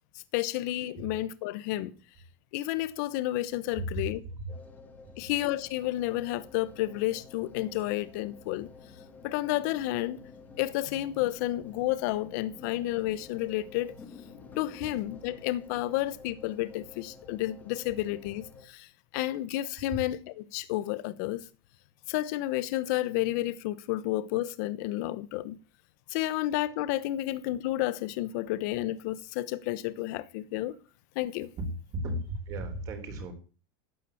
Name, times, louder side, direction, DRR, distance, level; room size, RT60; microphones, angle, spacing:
voice 1, 0.3-1.9 2.5-4.2 5.2-8.7 9.2-10.2 10.6-13.9 14.6-18.9 19.1-21.4 22.1-25.6 26.1-30.8 31.1-31.5, left 15 dB, 45° left, 1.0 m, -31 dB
sound 1, 4.5-18.7, left 4 dB, 15° left, 1.9 m, -50 dB
voice 2, 32.0-33.3, right 1 dB, 30° right, 3.7 m, -35 dB
12.5 x 9.2 x 8.5 m
supercardioid pair, 180°, 13 cm